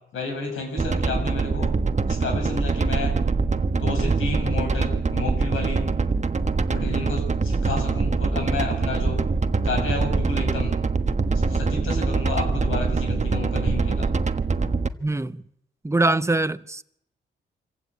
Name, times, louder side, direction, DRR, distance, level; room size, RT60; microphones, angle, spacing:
voice 1, 0.1-1.7 2.1-3.2 3.8-5.9 6.7-9.2 9.6-10.7 11.3-14.1, left 3 dB, 90° left, 7.2 m, -31 dB
sound 1, 0.8-14.9, right 4 dB, 35° right, 1.3 m, -24 dB
voice 2, 15.0-15.4 15.8-16.8, right 2 dB, 15° right, 1.0 m, -23 dB
25.5 x 15.5 x 8.9 m
cardioid pair, 60°, 20 cm